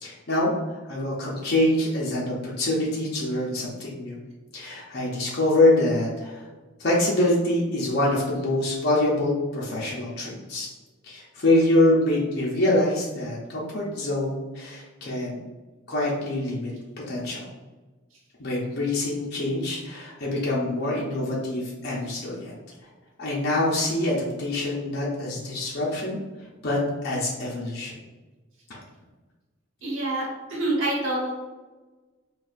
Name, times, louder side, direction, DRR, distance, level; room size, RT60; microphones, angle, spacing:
voice 1, 0.0-4.2 4.5-6.5 6.8-10.7 11.0-15.4 15.9-16.7 17.0-17.5 18.4-22.6 23.2-26.2 26.6-27.9, left 1 dB, 50° left, -5 dB, 0.7 m, -25 dB
voice 2, 29.8-31.3, right 2 dB, 75° right, -3 dB, 1.0 m, -27 dB
4.0 x 2.3 x 2.5 m, 1.2 s
head